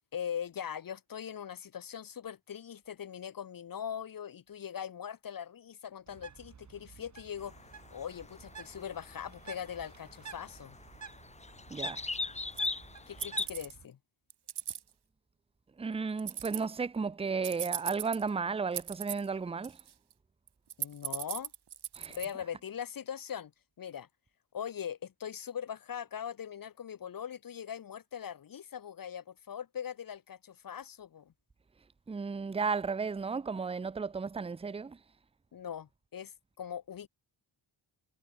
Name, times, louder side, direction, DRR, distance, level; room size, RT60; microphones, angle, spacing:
voice 1, 0.1-10.8 13.1-14.0 20.8-21.5 22.1-23.5 23.8-24.1 24.5-31.3 35.5-37.1, left 8 dB, 50° left, 1.0 m, -41 dB
Bird, 6.1-13.9, right 6 dB, 35° right, 2.5 m, -52 dB
sound 1, 7.4-13.5, left 3 dB, 15° left, 0.9 m, -40 dB
voice 2, 11.7-12.0 15.8-19.8 21.9-22.2 32.1-35.0, right 5 dB, 15° right, 0.5 m, -34 dB
sound 2, 12.6-12.7 13.2-13.7 14.3-14.8 16.2-16.7 17.4-18.3 18.7-19.3 19.6-20.1 20.5-22.3, right 10 dB, 60° right, 1.5 m, -38 dB
wide cardioid pair, 160°, 45 cm